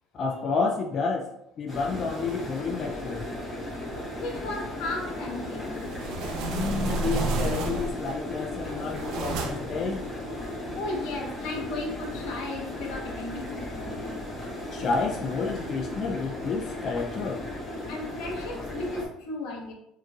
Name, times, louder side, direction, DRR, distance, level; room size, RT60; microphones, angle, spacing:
voice 1, 0.1-1.3 1.6-3.3 6.4-10.0 14.7-17.5, left 4 dB, 40° left, 1 dB, 0.3 m, -30 dB
sound 1, 1.7-19.1, left 1 dB, 15° left, 1.1 m, -36 dB
voice 2, 4.1-5.9 10.8-14.2 17.9-19.7, left 2 dB, 80° left, 1 dB, 1.0 m, -35 dB
sound 2, 5.6-8.1 8.6-9.8, right 2 dB, 70° right, 0.6 m, -31 dB
4.4 x 3.1 x 2.3 m, 0.81 s
cardioid pair, 145°, 0 cm